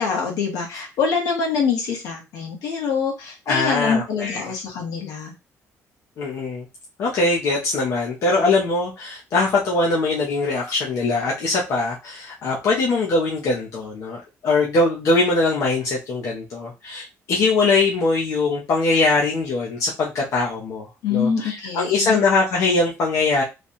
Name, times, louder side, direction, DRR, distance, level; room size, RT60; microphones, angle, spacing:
voice 1, 0.0-5.3 21.0-22.2, left 5 dB, 80° left, 1 dB, 1.4 m, -25 dB
voice 2, 3.5-4.5 6.2-6.6 7.0-23.4, left 3 dB, 55° left, -3 dB, 0.9 m, -22 dB
3.3 x 2.4 x 4.1 m, 0.26 s
cardioid pair, 165°, 6 cm